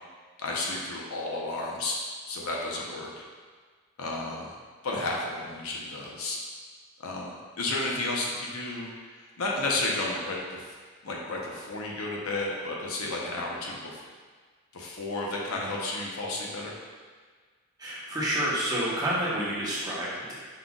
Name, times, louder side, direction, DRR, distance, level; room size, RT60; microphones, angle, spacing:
voice 1, 0.4-2.0 2.3-3.1 4.0-4.5 4.8-6.4 7.0-10.7 11.0-14.0 14.7-16.7, left 2 dB, 80° left, -2 dB, 0.8 m, -32 dB
voice 2, 17.8-20.3, right 1 dB, 15° right, -8 dB, 1.0 m, -29 dB
5.6 x 3.7 x 2.3 m, 1.5 s
head